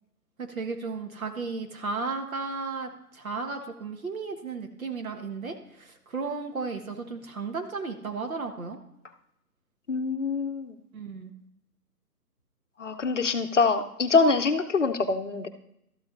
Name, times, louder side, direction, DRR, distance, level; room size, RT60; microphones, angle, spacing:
voice 1, 0.4-8.8 10.9-11.3, right 4 dB, 60° right, 5 dB, 1.4 m, -34 dB
voice 2, 9.9-10.8 12.8-15.5, left 4 dB, 50° left, 8 dB, 0.7 m, -24 dB
13.0 x 8.5 x 2.6 m, 0.79 s
figure-of-eight pair, 140°, 47 cm